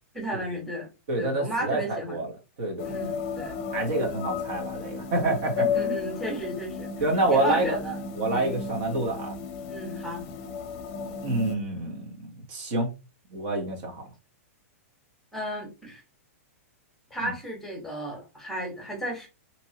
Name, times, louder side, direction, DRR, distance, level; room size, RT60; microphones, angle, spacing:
voice 1, 0.1-0.9 1.2-2.2 2.8-3.5 5.2-6.9 7.3-8.0 8.3-8.5 9.7-10.2 15.3-16.0 17.1-19.3, right 1 dB, 5° left, 1.2 m, -33 dB
voice 2, 1.1-2.3 2.6-2.9 3.7-5.7 7.0-7.8 8.1-9.3 11.2-12.9 13.3-14.1 17.2-17.3, right 2 dB, 45° right, 1.1 m, -27 dB
sound 1, 2.8-11.5, left 6 dB, 40° left, 0.6 m, -33 dB
2.9 x 2.7 x 2.8 m
hypercardioid pair, 150°, 8 cm